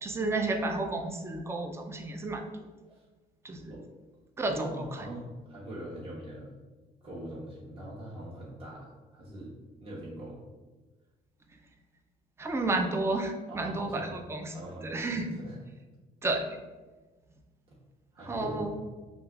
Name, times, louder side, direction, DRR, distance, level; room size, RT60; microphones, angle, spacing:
voice 1, 0.0-2.4 3.4-3.7 4.4-4.7 12.4-14.5 14.8-15.3 16.2-16.5 18.2-18.7, right 2 dB, 15° right, 5 dB, 0.4 m, -31 dB
voice 2, 4.5-6.5 7.0-9.5 9.8-10.4 13.5-14.2 14.5-15.6 17.7-17.8 18.1-18.8, right 1 dB, 35° right, -6 dB, 1.0 m, -42 dB
4.8 x 3.0 x 2.3 m, 1.3 s
cardioid pair, 110°, 17 cm